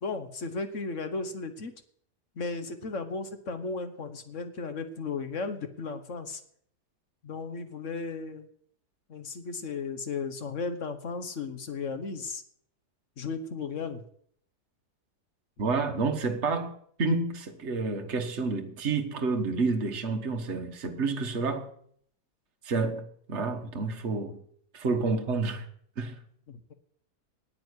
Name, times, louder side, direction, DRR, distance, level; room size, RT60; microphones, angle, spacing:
voice 1, 0.0-1.7 2.4-6.4 7.2-8.5 9.1-12.4 13.2-14.0 26.5-26.7, left 4 dB, 50° left, 1.4 m, -35 dB
voice 2, 15.6-21.7 22.6-24.4 24.7-25.6 26.0-26.2, right 3 dB, 45° right, 1.5 m, -29 dB
9.2 x 8.5 x 9.7 m
omnidirectional pair, 1.7 m